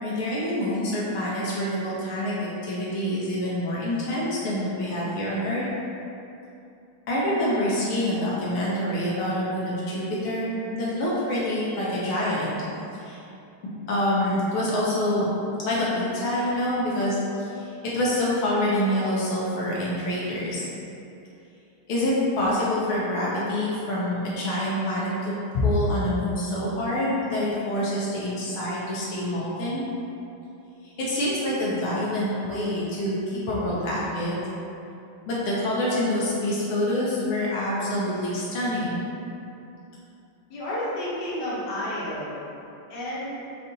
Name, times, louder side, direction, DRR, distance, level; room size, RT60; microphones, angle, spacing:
voice 1, 0.0-5.6 7.1-12.5 13.0-13.2 13.9-15.3 15.6-20.7 21.9-29.9 31.0-34.4 35.3-39.0, left 1 dB, 80° left, -6 dB, 1.5 m, -26 dB
voice 2, 40.5-42.4 42.9-43.4, left 1 dB, 55° left, -8 dB, 1.5 m, -31 dB
5.2 x 3.3 x 2.7 m, 2.8 s
omnidirectional pair, 2.3 m